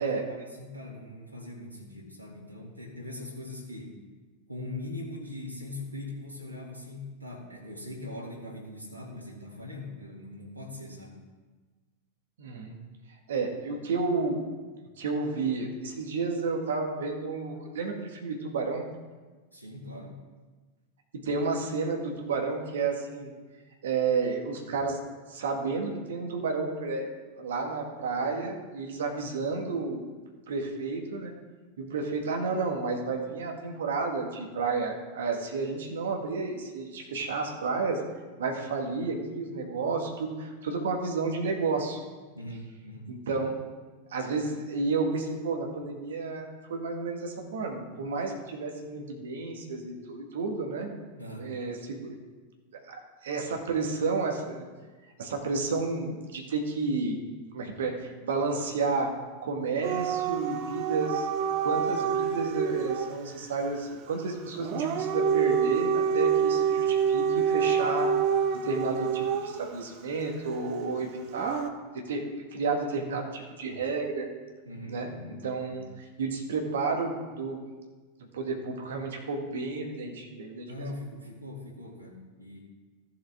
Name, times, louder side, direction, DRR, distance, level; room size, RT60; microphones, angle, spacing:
voice 1, 0.0-4.0 4.5-11.2 19.5-20.2 42.3-43.1 51.2-51.5 74.7-75.3 75.6-75.8 80.7-82.6, left 2 dB, 90° left, -3 dB, 1.9 m, -41 dB
voice 2, 12.4-12.8 13.3-14.4 15.0-18.9 21.1-23.3 23.8-25.0 25.3-27.1 27.4-30.0 30.5-31.3 31.8-38.0 38.4-42.0 43.1-43.6 44.1-51.0 51.4-52.1 52.9-54.7 55.2-57.2 57.5-59.1 59.4-61.3 61.6-68.1 68.6-71.7 72.1-74.3 74.9-75.1 75.4-75.8 76.2-77.6 78.3-80.9, right 4 dB, 60° right, 3 dB, 1.8 m, -31 dB
Dog / Siren, 59.8-63.1 64.6-69.7 71.3-71.7, right 7 dB, 40° right, 0.8 m, -27 dB
14.5 x 6.8 x 3.7 m, 1.3 s
figure-of-eight pair, 90°, 0 cm